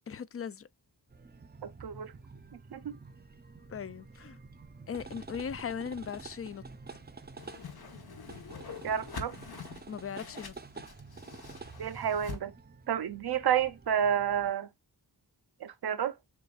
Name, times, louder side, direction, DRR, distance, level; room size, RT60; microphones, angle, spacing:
voice 1, 0.1-0.7 3.7-4.4 4.9-6.6 9.9-10.8, left 7 dB, 35° left, 0.4 m, -39 dB
sound 1, 1.1-14.5, right 4 dB, 25° right, 0.6 m, -49 dB
voice 2, 1.6-2.1 2.7-3.0 8.8-9.4 11.8-12.5 12.9-14.7 15.6-16.1, right 9 dB, 70° right, 0.6 m, -30 dB
Whoosh swoosh swish, 7.4-12.4, left 5 dB, 65° left, 1.1 m, -45 dB
6.7 x 2.5 x 2.3 m
wide cardioid pair, 80°, 40 cm